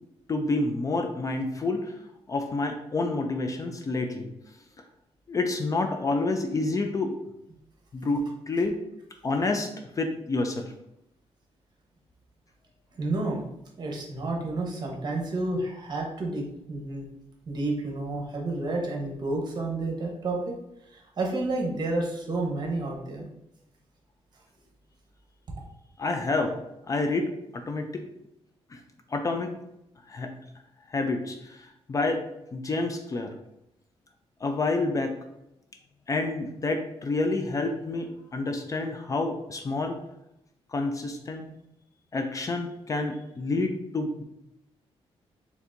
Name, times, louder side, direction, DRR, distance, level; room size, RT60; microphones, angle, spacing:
voice 1, 0.3-2.0 2.3-4.3 5.3-7.2 7.9-8.8 9.2-10.7 26.0-26.6 26.9-28.0 28.7-28.8 29.1-29.5 30.1-30.3 30.9-32.3 32.5-33.3 34.4-35.2 36.1-40.0 40.7-41.5 42.1-44.2, left 3 dB, 30° left, 5 dB, 0.4 m, -28 dB
voice 2, 13.0-13.4 13.8-17.1 17.5-20.6 20.9-23.3, right 2 dB, 40° right, 0 dB, 1.0 m, -30 dB
4.3 x 3.4 x 2.5 m, 0.84 s
cardioid pair, 110°, 11 cm